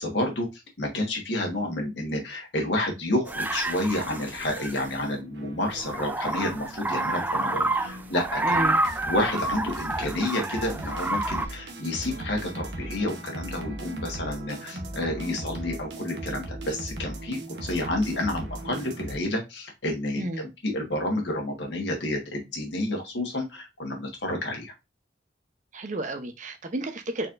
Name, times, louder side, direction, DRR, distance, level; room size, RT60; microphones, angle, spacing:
voice 1, 0.0-8.7 9.0-24.7, left 1 dB, 70° left, 1.5 m, -30 dB
sound 1, 3.3-5.0 5.6-11.4, right 2 dB, 10° right, 0.3 m, -29 dB
sound 2, 5.1-19.2, right 1 dB, 65° right, 1.0 m, -38 dB
voice 2, 8.4-8.8 20.2-20.4 25.7-27.3, right 2 dB, 40° right, 0.7 m, -31 dB
4.3 x 4.2 x 2.5 m
head